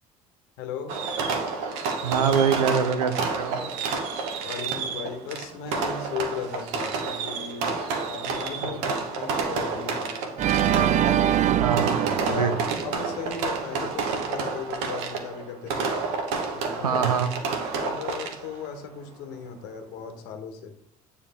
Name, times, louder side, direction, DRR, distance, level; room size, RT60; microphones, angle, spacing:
voice 1, 0.6-1.0 4.4-7.7 8.1-8.8 9.1-10.3 10.7-11.2 12.3-12.5 12.8-16.0 16.5-17.1 17.8-20.7, left 6 dB, 65° left, 6 dB, 1.3 m, -37 dB
Fireworks, 0.9-18.7, right 4 dB, 65° right, 1.3 m, -30 dB
voice 2, 2.0-3.6 8.6-8.7 11.6-11.9 12.3-12.5 16.8-17.3, right 7 dB, 85° right, 10 dB, 0.7 m, -24 dB
Organ, 10.4-13.5, right 11 dB, 40° right, 0.4 m, -24 dB
8.6 x 4.7 x 3.6 m, 0.67 s
hypercardioid pair, 60°, 19 cm